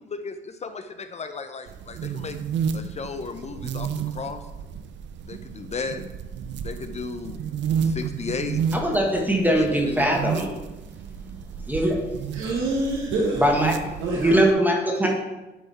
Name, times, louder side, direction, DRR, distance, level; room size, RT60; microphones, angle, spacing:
voice 1, 0.0-2.4 2.7-4.4 5.2-6.0 6.6-7.4 7.8-8.6 9.6-10.2, left 4 dB, 35° left, 8 dB, 0.5 m, -34 dB
sound 1, 1.7-14.5, right 7 dB, 65° right, 0.5 m, -31 dB
voice 2, 8.7-10.5 11.7-12.4 13.4-13.7 14.2-15.1, right 1 dB, 10° right, 0 dB, 1.3 m, -21 dB
voice 3, 12.3-13.5 14.0-14.4 15.0-15.1, right 2 dB, 80° right, -3 dB, 1.4 m, -26 dB
10.0 x 3.5 x 4.1 m, 1.1 s
cardioid pair, 90°, 20 cm